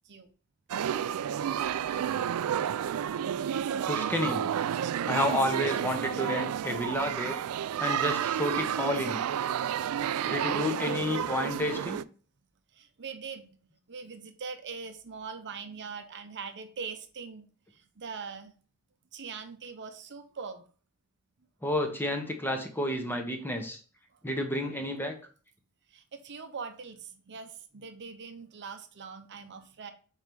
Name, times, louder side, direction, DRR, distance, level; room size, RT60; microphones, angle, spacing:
sound 1, 0.7-12.0, right 9 dB, 75° right, 0.3 m, -31 dB
voice 1, 3.9-4.4 5.1-7.4 7.8-9.2 10.3-12.0 21.6-23.8 24.2-25.1, left 1 dB, 10° left, 4 dB, 1.0 m, -30 dB
voice 2, 12.8-13.6 13.9-17.5 18.0-18.5 19.1-20.7 25.9-29.9, right 5 dB, 55° right, 8 dB, 0.7 m, -42 dB
4.9 x 4.6 x 5.3 m, 0.40 s
head